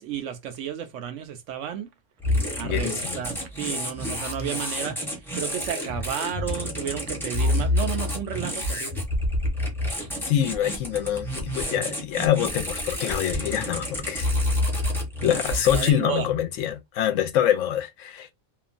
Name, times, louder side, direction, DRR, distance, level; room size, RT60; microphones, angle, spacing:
voice 1, 0.0-1.9 2.6-9.0 15.7-16.3, right 9 dB, 70° right, 0.9 m, -32 dB
sound 1, 2.2-15.9, left 1 dB, ahead, 0.7 m, -28 dB
voice 2, 2.6-3.2 10.3-14.3 15.2-18.3, left 10 dB, 75° left, 0.9 m, -25 dB
2.9 x 2.2 x 2.5 m
omnidirectional pair, 1.3 m